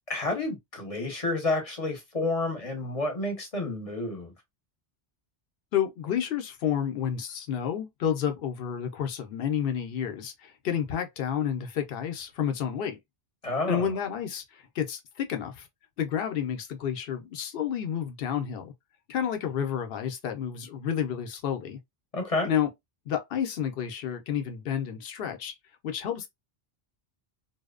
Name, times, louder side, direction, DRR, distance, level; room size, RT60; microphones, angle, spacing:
voice 1, 0.1-4.3 13.4-13.9 22.1-22.5, left 2 dB, 40° left, 0.7 m, -30 dB
voice 2, 5.7-13.0 13.7-15.7 16.0-18.7 19.1-21.8 22.4-22.7 23.1-25.5 25.8-26.3, left 9 dB, 70° left, 0.7 m, -30 dB
2.6 x 2.0 x 2.3 m
omnidirectional pair, 1.0 m